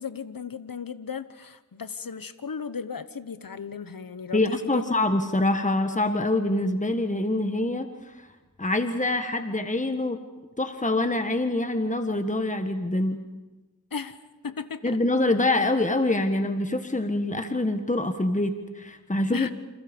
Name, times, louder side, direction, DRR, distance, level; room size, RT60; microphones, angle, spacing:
voice 1, 0.0-4.9 13.9-14.2 14.4-15.0 19.3-19.5, left 6 dB, 75° left, 13 dB, 1.1 m, -35 dB
voice 2, 4.3-7.9 8.6-10.2 10.6-13.2 14.8-19.5, left 2 dB, 20° left, 7 dB, 1.6 m, -25 dB
29.0 x 27.0 x 5.4 m, 1.2 s
wide cardioid pair, 45°, 35 cm